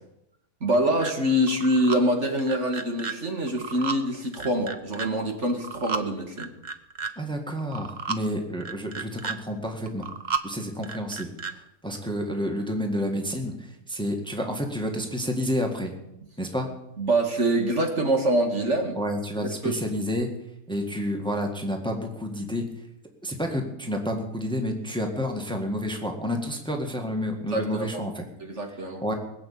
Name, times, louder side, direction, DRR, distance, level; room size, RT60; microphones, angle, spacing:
voice 1, 0.6-6.5 17.0-19.0 19.6-19.8 27.5-28.0 28.4-29.0, right 1 dB, 50° right, 3 dB, 2.3 m, -25 dB
sound 1, 1.0-1.1 1.5-2.0 2.4-3.1 3.5-4.0 4.3-5.1 5.5-6.0 6.4-7.1 7.6-8.2 8.6-9.4 9.9-10.4 10.8-11.5, right 5 dB, 35° right, 0.9 m, -32 dB
voice 2, 7.2-10.1 10.4-15.9 16.4-16.7 19.0-20.3 20.7-22.7 23.2-28.2 29.0-29.1, equal, 5° left, 3 dB, 1.8 m, -29 dB
20.5 x 7.1 x 8.7 m, 0.84 s
omnidirectional pair, 1.5 m